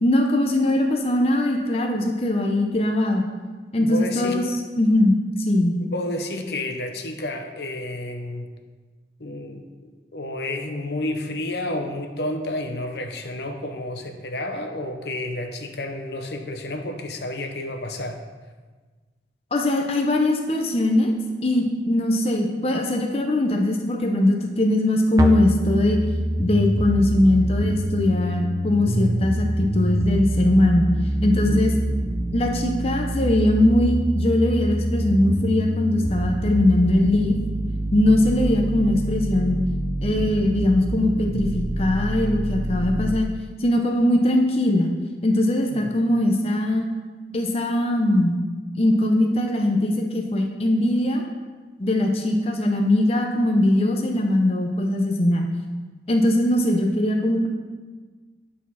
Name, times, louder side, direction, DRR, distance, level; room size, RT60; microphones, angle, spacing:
voice 1, 0.0-3.2 3.7-4.4 4.8-5.8 19.5-21.1 21.4-26.0 26.4-30.9 31.2-31.7 32.3-37.4 37.9-39.6 40.0-43.3 43.6-44.9 45.2-46.8 47.3-48.4 48.8-51.2 51.8-55.4 56.1-57.5, left 1 dB, 35° left, 2 dB, 0.6 m, -21 dB
voice 2, 3.8-4.4 5.8-8.5 9.2-18.2 31.3-31.8 45.7-45.9, left 1 dB, 70° left, 5 dB, 0.7 m, -31 dB
sound 1, 25.2-43.2, right 1 dB, 20° right, 0.5 m, -26 dB
9.7 x 4.2 x 5.6 m, 1.4 s
head